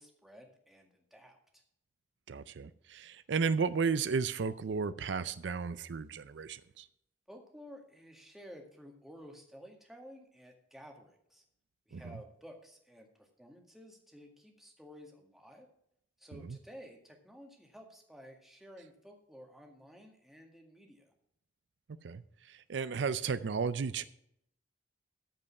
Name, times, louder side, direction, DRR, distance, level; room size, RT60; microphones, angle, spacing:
voice 1, 0.0-1.6 7.3-11.4 11.9-15.7 16.2-21.1, equal, ahead, 1.9 m, -53 dB
voice 2, 2.3-6.9 11.9-12.2 16.3-16.6 22.0-24.0, right 5 dB, 70° right, 0.5 m, -34 dB
14.0 x 5.4 x 5.9 m
head